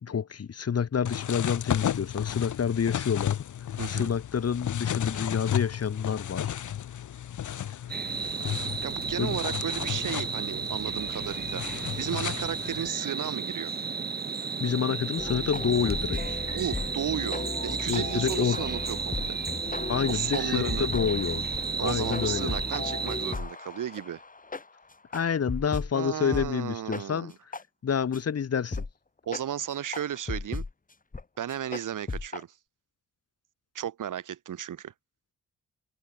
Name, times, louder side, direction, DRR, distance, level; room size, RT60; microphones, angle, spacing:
voice 1, 0.0-3.4 3.9-6.7 9.2-9.3 14.6-16.4 17.9-18.6 19.9-21.5 21.8-22.5 25.1-27.3 27.8-28.8, left 7 dB, 50° left, 1.4 m, -28 dB
sound 1, 1.1-12.9, left 10 dB, 70° left, 1.4 m, -33 dB
voice 2, 3.8-4.1 8.8-13.7 16.5-19.4 20.1-20.9 21.8-24.2 25.9-27.3 29.3-30.6 31.4-32.5 33.7-34.9, right 10 dB, 80° right, 4.6 m, -34 dB
sound 2, 7.9-23.3, right 5 dB, 30° right, 0.9 m, -33 dB
sound 3, 15.2-25.9 26.3-26.5 26.9-27.0 27.5-27.6 28.1-28.2 28.7-28.9 29.3-29.4 29.9-30.7 31.1-31.2 31.5-32.4, left 3 dB, 25° left, 1.8 m, -35 dB
cardioid pair, 60°, 31 cm